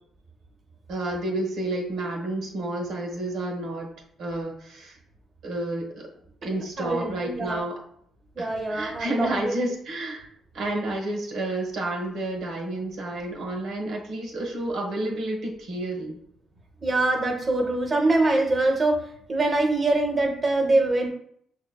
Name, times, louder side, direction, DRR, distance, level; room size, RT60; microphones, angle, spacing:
voice 1, 0.9-3.9 4.2-5.0 5.4-6.1 6.4-7.8 8.4-10.3 10.5-16.2, right 1 dB, 75° right, 0 dB, 1.1 m, -30 dB
voice 2, 6.8-7.6 8.4-9.4 16.8-19.0 19.3-21.1, right 2 dB, 30° right, 1 dB, 0.8 m, -23 dB
6.0 x 2.8 x 2.2 m, 0.67 s
cardioid pair, 90°, 0 cm